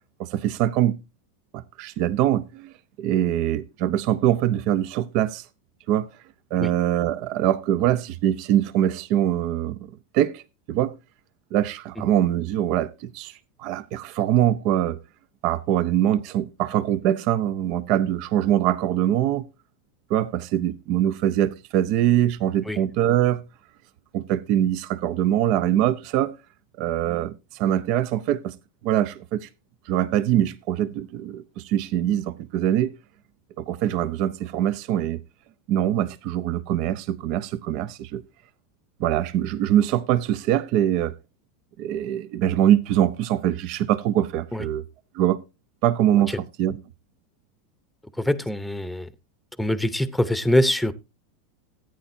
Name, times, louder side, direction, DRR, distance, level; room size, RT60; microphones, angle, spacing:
voice 1, 0.2-1.0 1.5-2.7 3.0-5.4 5.9-6.1 6.5-10.4 10.7-10.9 11.5-13.3 13.6-15.0 15.4-19.5 20.1-23.4 24.1-26.4 26.8-28.5 28.8-29.5 29.9-32.9 33.6-35.2 35.7-38.2 39.0-41.1 41.8-44.8 45.1-45.4 45.8-46.8, right 11 dB, 55° right, 0.6 m, -23 dB
voice 2, 48.2-49.1 49.6-50.9, left 1 dB, ahead, 0.8 m, -23 dB
14.5 x 9.0 x 2.7 m
hypercardioid pair, 100°, 0 cm